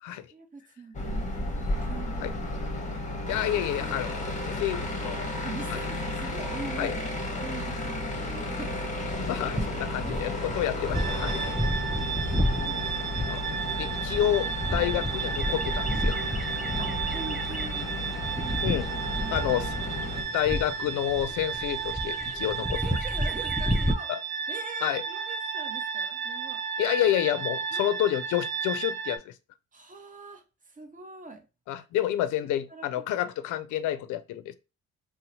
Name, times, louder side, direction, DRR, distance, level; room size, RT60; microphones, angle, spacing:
voice 1, 0.3-3.0 5.4-7.1 7.4-8.8 9.5-10.2 11.0-11.4 12.0-13.3 14.6-14.8 16.8-17.9 18.3-20.4 22.0-22.1 22.8-24.1 24.5-26.6 27.7-27.9 29.7-31.5 31.7-32.1 32.7-32.9, right 3 dB, 25° right, 0.8 m, -44 dB
sound 1, 0.9-20.2, left 1 dB, 25° left, 0.9 m, -33 dB
voice 2, 3.3-5.3 6.8-6.9 9.1-11.4 11.8-12.2 12.5-12.8 13.3-13.5 13.8-16.2 18.6-18.9 19.3-19.7 20.3-22.8 24.1-24.2 24.8-25.0 26.8-29.3 31.7-34.5, left 12 dB, 80° left, 0.4 m, -29 dB
sound 2, 9.0-23.9, equal, ahead, 0.4 m, -32 dB
sound 3, 10.9-29.2, right 6 dB, 60° right, 0.7 m, -33 dB
2.7 x 2.1 x 4.0 m
cardioid pair, 90°, 30 cm